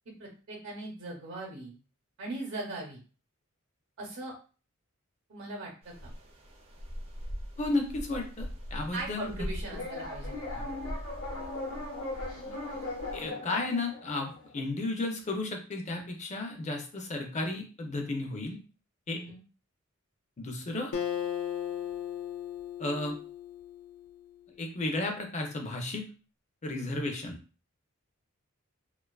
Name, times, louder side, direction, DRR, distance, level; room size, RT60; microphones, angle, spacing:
voice 1, 0.2-1.8 2.2-3.0 4.0-4.3 5.3-6.1 8.9-10.7 19.1-19.4, right 2 dB, 75° right, -1 dB, 0.7 m, -40 dB
sound 1, 5.8-13.3, equal, 30° right, 0.4 m, -41 dB
voice 2, 7.6-9.5 13.1-18.6 19.1-19.2 20.4-20.9 22.8-23.2 24.6-26.0 26.6-27.4, left 2 dB, 35° left, 3 dB, 0.5 m, -33 dB
sound 2, 9.7-14.6, left 2 dB, 70° left, 0.8 m, -39 dB
Acoustic guitar, 20.9-24.4, left 10 dB, 90° left, 0.4 m, -36 dB
2.4 x 2.3 x 2.3 m, 0.36 s
head